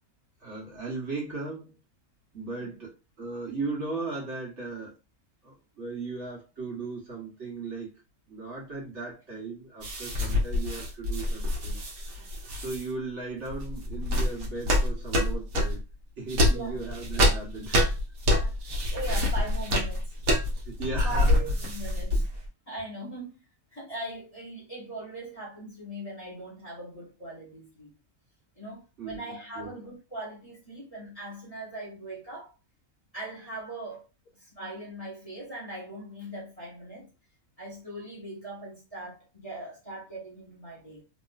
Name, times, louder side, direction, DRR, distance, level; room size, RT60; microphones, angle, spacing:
voice 1, 0.4-1.8 2.3-4.9 5.4-8.0 8.3-11.8 12.6-15.8 16.2-18.0 20.6-21.4 29.0-29.8, right 3 dB, 50° right, 1.4 m, -37 dB
sound 1, 9.8-12.8 13.5-15.8 16.3-22.5, left 1 dB, 70° right, 1.4 m, -26 dB
voice 2, 16.4-16.8 18.4-20.1 21.0-22.3 22.7-23.4 23.7-27.9 28.5-32.5 33.1-34.0 34.3-37.1 37.6-41.0, right 1 dB, 25° left, 1.5 m, -40 dB
3.0 x 3.0 x 2.4 m
omnidirectional pair, 1.6 m